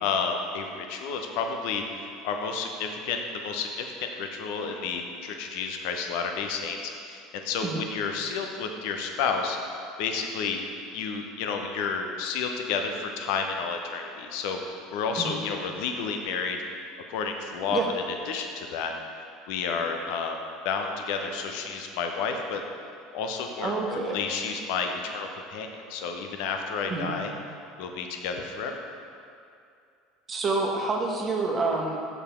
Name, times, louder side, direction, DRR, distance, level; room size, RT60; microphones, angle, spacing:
voice 1, 0.0-1.8 2.2-9.6 10.0-10.6 10.9-14.6 14.9-16.6 17.1-17.8 18.3-18.9 19.5-20.4 20.6-22.6 23.1-27.3 27.8-28.9, left 5 dB, 60° left, 4 dB, 0.8 m, -31 dB
voice 2, 23.6-24.2 26.9-27.2 30.3-32.0, right 3 dB, 30° right, 0 dB, 1.3 m, -28 dB
6.9 x 6.7 x 4.4 m, 2.5 s
figure-of-eight pair, 70°, 0 cm